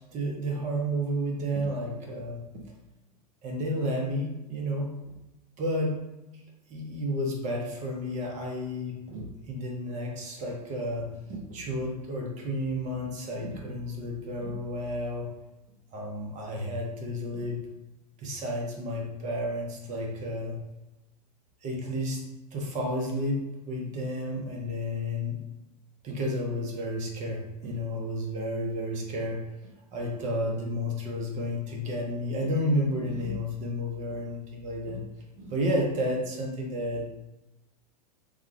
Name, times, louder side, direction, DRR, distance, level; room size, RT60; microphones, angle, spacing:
voice 1, 0.1-2.4 3.4-4.9 5.6-5.9 6.7-15.3 15.9-17.6 18.2-20.5 21.6-22.2 22.5-25.4 26.0-29.4 29.9-35.0 35.4-37.1, equal, 35° right, 0 dB, 0.9 m, -31 dB
3.5 x 2.3 x 3.2 m, 0.98 s
hypercardioid pair, 100°, 21 cm